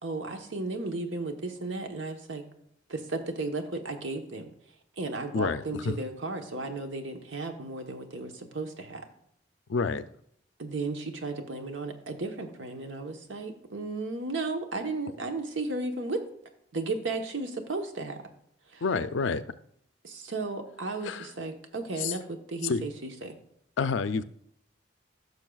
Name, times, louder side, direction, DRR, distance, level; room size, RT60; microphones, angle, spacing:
voice 1, 0.0-2.4 2.9-4.5 5.0-9.0 10.6-16.2 16.7-18.2 18.7-18.8 20.0-22.9 23.2-23.4, right 3 dB, 80° right, 5 dB, 1.1 m, -34 dB
voice 2, 5.3-5.9 9.7-10.0 18.8-19.4 21.0-21.3 22.0-22.1 22.6-22.8 23.8-24.2, left 4 dB, 75° left, 13 dB, 0.5 m, -28 dB
15.0 x 6.4 x 2.4 m, 0.70 s
head